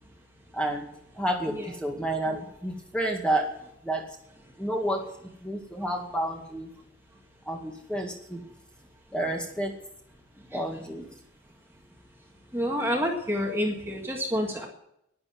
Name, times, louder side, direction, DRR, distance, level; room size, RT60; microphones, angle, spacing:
voice 1, 0.5-0.8 1.1-3.5 3.8-4.1 4.6-5.1 5.4-6.7 7.5-8.4 9.1-9.8 10.5-11.1, right 1 dB, 5° left, 1 dB, 2.1 m, -30 dB
voice 2, 12.5-14.7, equal, 10° right, 0 dB, 1.8 m, -28 dB
11.5 x 11.0 x 7.6 m, 0.76 s
head